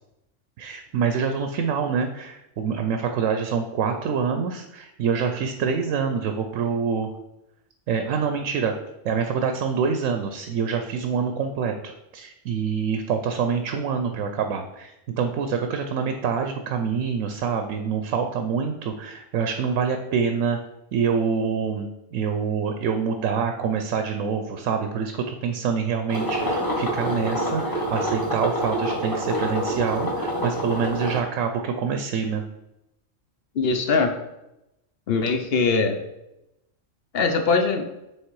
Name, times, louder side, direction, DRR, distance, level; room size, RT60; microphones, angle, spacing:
voice 1, 0.6-7.1 7.9-8.7 9.0-20.6 20.9-32.4, right 6 dB, 80° right, 6 dB, 1.0 m, -26 dB
sound 1, 26.1-31.2, equal, 15° left, 1.3 m, -26 dB
voice 2, 33.5-34.2 35.1-36.0 37.1-37.9, left 4 dB, 55° left, 6 dB, 0.8 m, -21 dB
6.5 x 3.5 x 4.6 m, 0.89 s
omnidirectional pair, 1.4 m